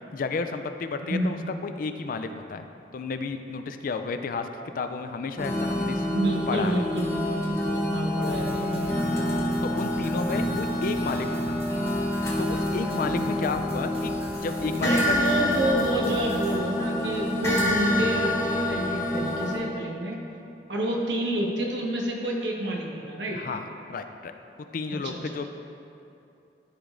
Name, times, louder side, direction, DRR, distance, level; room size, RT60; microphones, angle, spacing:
voice 1, 0.1-2.7 2.9-4.5 4.7-6.1 6.5-6.7 9.6-11.6 12.4-15.1 23.3-24.3 24.7-25.5, left 4 dB, 50° left, 8 dB, 0.4 m, -32 dB
voice 2, 1.0-1.6 6.1-9.1 13.1-13.6 14.8-20.2 20.7-23.4 25.0-25.5, right 1 dB, 80° right, -1 dB, 1.1 m, -29 dB
sound 1, 5.4-19.6, left 1 dB, 15° left, 0.8 m, -27 dB
sound 2, 8.2-16.6, right 1 dB, 35° right, 1.1 m, -43 dB
13.0 x 5.0 x 2.5 m, 2.7 s
head